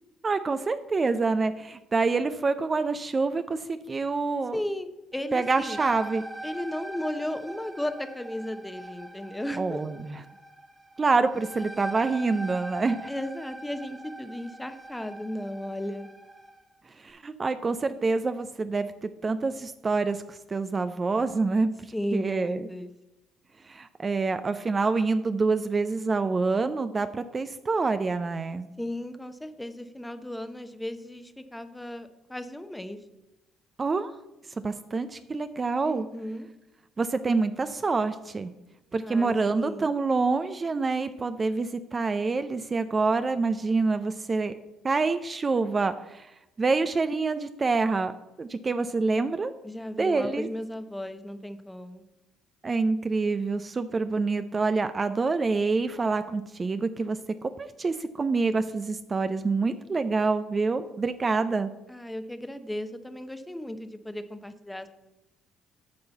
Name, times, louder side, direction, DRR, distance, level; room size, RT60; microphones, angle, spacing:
voice 1, 0.2-4.6 5.3-6.2 9.6-10.2 11.0-13.0 17.0-21.7 22.1-22.6 23.7-28.7 33.8-34.1 34.6-36.1 37.0-38.5 38.9-44.5 44.8-46.3 46.6-48.1 48.4-49.5 50.0-50.5 52.6-57.2 57.6-61.7, right 4 dB, 35° right, 11 dB, 0.5 m, -26 dB
voice 2, 4.5-5.8 6.4-9.8 13.1-16.1 21.9-22.9 28.8-33.0 35.8-36.5 39.0-39.9 49.6-52.0 61.9-64.9, left 1 dB, 10° left, 9 dB, 0.9 m, -35 dB
sound 1, 5.1-16.6, right 1 dB, 15° right, 1.2 m, -42 dB
9.7 x 3.8 x 7.0 m, 0.96 s
supercardioid pair, 65°, 0 cm